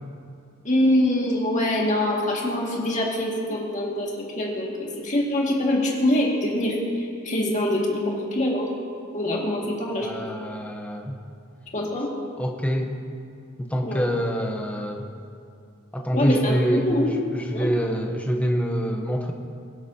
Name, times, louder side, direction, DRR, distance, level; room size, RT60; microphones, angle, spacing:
voice 1, 0.6-4.1 4.4-8.7 9.1-10.1 11.7-12.1 13.8-14.1 16.1-17.1 17.5-17.7, left 1 dB, 35° left, -3 dB, 2.0 m, -24 dB
voice 2, 10.0-11.2 12.4-13.0 13.6-15.1 15.9-19.3, equal, 5° left, 2 dB, 0.8 m, -26 dB
22.5 x 7.9 x 2.8 m, 2.4 s
head